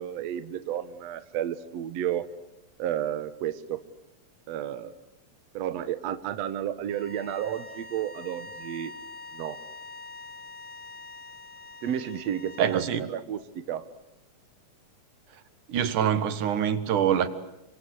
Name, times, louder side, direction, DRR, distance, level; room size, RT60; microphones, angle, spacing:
voice 1, 0.0-2.3 2.8-3.8 4.5-5.0 5.5-8.9 9.3-9.6 11.8-12.8 13.1-13.9, right 10 dB, 65° right, 11 dB, 2.2 m, -32 dB
sound 1, 6.9-13.0, left 2 dB, 30° left, 3.3 m, -44 dB
voice 2, 12.6-13.1 15.7-17.3, right 9 dB, 80° right, 12 dB, 3.1 m, -25 dB
29.5 x 25.0 x 8.0 m, 0.88 s
omnidirectional pair, 3.5 m